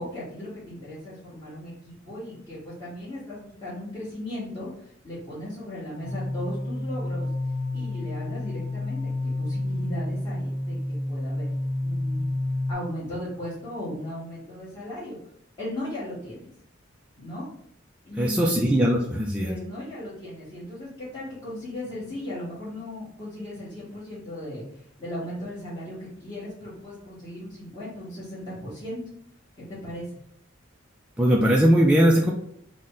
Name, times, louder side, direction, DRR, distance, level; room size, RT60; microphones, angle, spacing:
voice 1, 0.0-7.3 7.7-11.5 11.8-12.3 12.7-15.2 15.6-16.5 17.2-17.5 18.0-18.7 19.4-29.0 29.6-30.1, left 1 dB, 25° left, -12 dB, 1.4 m, -37 dB
sound 1, 6.0-12.7, left 1 dB, 50° left, 0.6 m, -29 dB
voice 2, 18.2-19.5 31.2-32.3, equal, 5° right, -2 dB, 0.3 m, -20 dB
3.8 x 2.1 x 3.7 m, 0.71 s
head